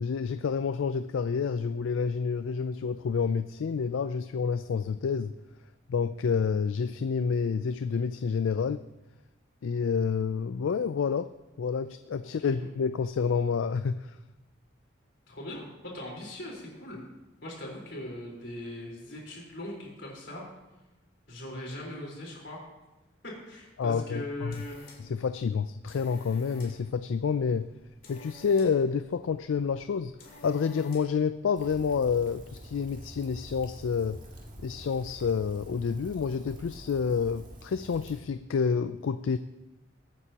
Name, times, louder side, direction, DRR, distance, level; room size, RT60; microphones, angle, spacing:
voice 1, 0.0-5.3 5.9-8.8 9.6-11.3 11.6-14.1 23.8-24.6 25.0-27.7 28.1-30.1 30.4-34.2 34.6-39.4, left 6 dB, 80° left, 11 dB, 0.4 m, -29 dB
voice 2, 15.3-17.0 17.4-20.4 21.3-22.6 23.2-24.9, left 1 dB, 65° left, -3 dB, 4.2 m, -40 dB
sound 1, 24.2-31.3, left 2 dB, 45° left, 2.4 m, -53 dB
Rain, 31.5-38.2, equal, 40° right, 1.9 m, -47 dB
22.0 x 9.1 x 2.9 m, 1.0 s
head